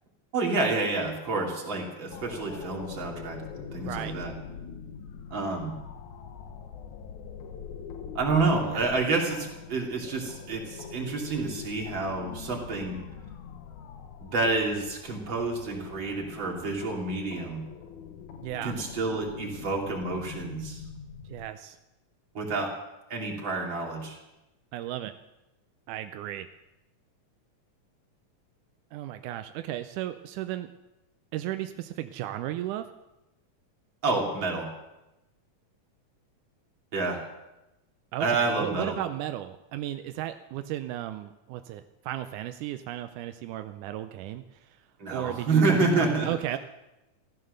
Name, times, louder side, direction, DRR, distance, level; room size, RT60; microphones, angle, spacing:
voice 1, 0.3-4.3 5.3-5.8 8.2-13.0 14.2-17.6 18.6-20.8 22.4-22.7 23.1-24.2 34.0-34.7 36.9-37.2 38.2-38.9 45.0-46.3, right 3 dB, 40° right, -1 dB, 3.5 m, -28 dB
sound 1, 2.1-21.5, left 6 dB, 75° left, 2.5 m, -43 dB
voice 2, 3.8-4.2 8.7-8.8 18.4-18.8 21.3-21.8 24.7-25.2 25.9-26.5 28.9-30.7 31.3-32.9 38.1-46.6, right 13 dB, 85° right, 9 dB, 2.2 m, -35 dB
15.0 x 13.5 x 6.6 m, 0.96 s
omnidirectional pair, 3.5 m